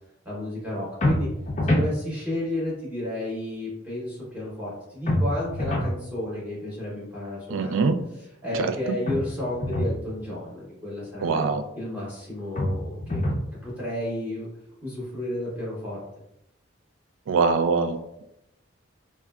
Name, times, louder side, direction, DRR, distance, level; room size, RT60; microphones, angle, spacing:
voice 1, 0.2-1.3 1.7-7.9 8.2-13.2 13.6-14.5 14.8-16.0, left 1 dB, 10° right, -7 dB, 0.7 m, -32 dB
sound 1, 1.0-1.9 5.1-6.0 9.1-10.0 12.6-13.5, left 1 dB, 35° left, 0.4 m, -25 dB
voice 2, 7.5-8.0 8.5-8.7 11.2-11.6 17.3-18.2, right 4 dB, 80° right, 8 dB, 0.3 m, -23 dB
3.6 x 2.2 x 2.3 m, 0.83 s
head